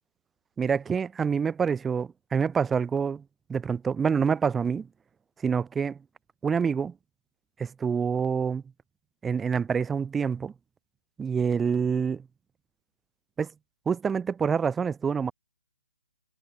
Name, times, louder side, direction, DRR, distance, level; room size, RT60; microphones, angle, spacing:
voice 1, 0.6-3.2 3.5-4.9 5.4-6.0 6.4-6.9 7.6-8.6 9.2-10.5 11.2-12.3 13.4-13.5 13.9-15.3, right 6 dB, 10° right, 2.0 m, -26 dB
hypercardioid pair, 155°, 0 cm